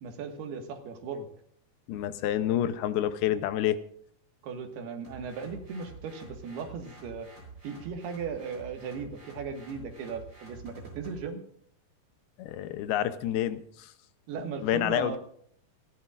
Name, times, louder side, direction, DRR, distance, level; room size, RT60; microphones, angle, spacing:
voice 1, 0.0-1.3 4.4-7.3 7.6-11.4 14.3-15.2, right 5 dB, 80° right, 4 dB, 3.7 m, -37 dB
voice 2, 1.9-3.8 12.4-13.9 14.6-15.2, left 11 dB, 80° left, 11 dB, 2.6 m, -28 dB
sound 1, 5.0-11.2, right 3 dB, 20° right, 7.4 m, -48 dB
28.0 x 11.5 x 2.5 m, 0.64 s
omnidirectional pair, 4.6 m